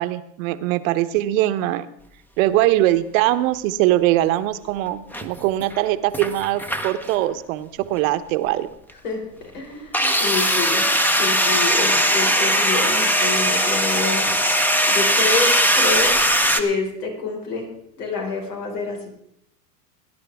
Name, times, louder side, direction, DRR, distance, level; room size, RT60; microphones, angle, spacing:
voice 1, 0.0-1.9 2.4-8.7, right 14 dB, 55° right, 12 dB, 1.0 m, -21 dB
sound 1, 5.1-5.8 6.1-7.1 7.8-7.9 9.9-16.6, equal, 5° left, 0.8 m, -19 dB
voice 2, 9.0-10.9 11.2-16.2 16.5-17.7 18.0-19.1, left 4 dB, 75° left, 1 dB, 4.8 m, -28 dB
19.5 x 10.5 x 3.5 m, 0.75 s
hypercardioid pair, 110°, 48 cm